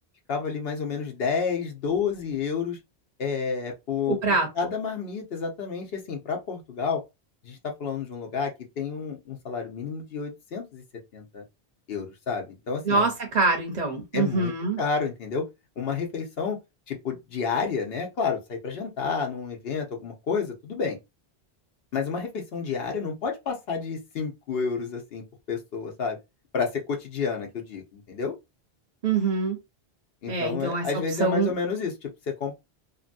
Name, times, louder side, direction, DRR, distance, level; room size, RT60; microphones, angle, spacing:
voice 1, 0.3-2.8 3.2-4.2 4.5-7.0 7.4-10.8 11.1-11.4 11.9-13.1 14.1-14.5 14.8-15.4 15.8-16.6 16.9-21.0 21.9-26.2 26.5-28.3 30.2-32.5, left 5 dB, 70° left, 1.0 m, -30 dB
voice 2, 4.1-4.5 12.8-14.8 29.0-29.6 30.3-30.8 31.2-31.5, right 3 dB, 50° right, 0.7 m, -24 dB
2.7 x 2.6 x 2.5 m
omnidirectional pair, 1.1 m